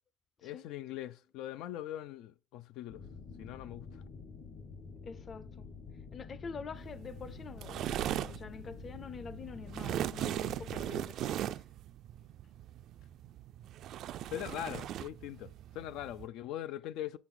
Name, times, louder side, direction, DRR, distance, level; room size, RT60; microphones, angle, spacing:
voice 1, 0.4-3.0 3.4-4.0 14.3-17.2, left 12 dB, 85° left, 0.3 m, -41 dB
sound 1, 2.9-11.0, left 5 dB, 50° left, 1.2 m, -49 dB
voice 2, 5.0-5.7 6.1-11.6, left 5 dB, 35° left, 0.5 m, -46 dB
sound 2, 6.8-16.3, right 12 dB, 65° right, 0.3 m, -39 dB
6.9 x 6.1 x 3.7 m
cardioid pair, 145°, 0 cm